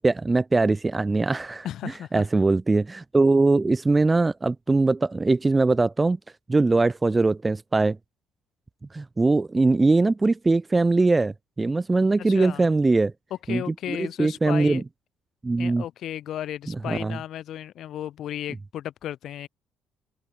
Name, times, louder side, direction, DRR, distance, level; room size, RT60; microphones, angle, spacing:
voice 1, 0.0-1.6 2.1-6.2 6.5-8.0 8.9-13.1 13.5-13.6 13.9-14.8 15.4-15.8 16.9-17.2, right 3 dB, 20° right, 1.2 m, -21 dB
voice 2, 1.6-2.3 12.2-12.7 13.5-14.8 15.6-19.5, left 11 dB, 65° left, 5.5 m, -34 dB
open air
supercardioid pair, 70°, 0 cm